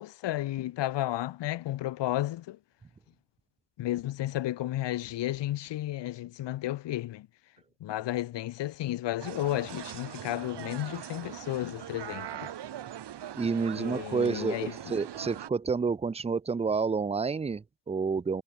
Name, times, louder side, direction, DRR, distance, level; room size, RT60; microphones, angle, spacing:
voice 1, 0.0-2.6 3.8-7.3 7.8-12.5 13.7-15.0, left 14 dB, 90° left, 1.2 m, -33 dB
sound 1, 9.2-15.5, right 11 dB, 75° right, 2.3 m, -41 dB
voice 2, 13.4-18.4, right 5 dB, 15° right, 0.4 m, -29 dB
cardioid pair, 70°, 41 cm